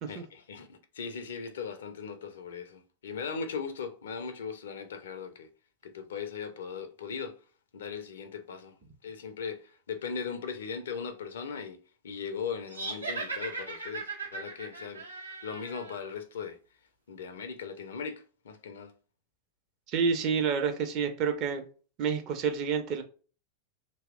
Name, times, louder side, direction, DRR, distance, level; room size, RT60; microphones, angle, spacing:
voice 1, 0.1-5.5 5.8-7.4 7.7-8.8 9.0-15.0 15.4-16.6 17.1-18.9, left 6 dB, 65° left, 0.4 m, -39 dB
sound 1, 12.7-16.1, right 3 dB, 85° right, 0.6 m, -38 dB
voice 2, 19.9-21.6 22.0-23.0, right 6 dB, 40° right, 0.5 m, -29 dB
2.7 x 2.0 x 2.4 m
figure-of-eight pair, 90°, 0 cm